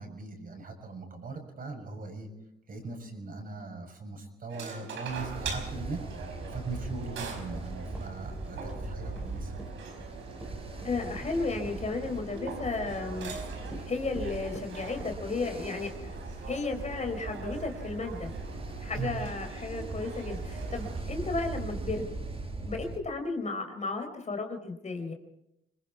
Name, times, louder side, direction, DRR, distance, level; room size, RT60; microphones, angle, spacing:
voice 1, 0.0-2.3 2.7-9.5 19.0-19.2, right 4 dB, 45° right, 3 dB, 7.0 m, -40 dB
sound 1, 4.5-21.0, right 4 dB, 75° right, 5.1 m, -44 dB
Ocean, 5.1-23.0, right 3 dB, 30° right, 6.8 m, -40 dB
sound 2, 6.5-15.7, equal, 5° right, 4.8 m, -51 dB
voice 2, 10.8-13.4 13.9-16.1 16.5-18.3 18.8-22.1 22.6-25.1, left 3 dB, 35° left, 5 dB, 4.3 m, -34 dB
27.0 x 20.5 x 4.7 m, 0.81 s
cardioid pair, 90°, 20 cm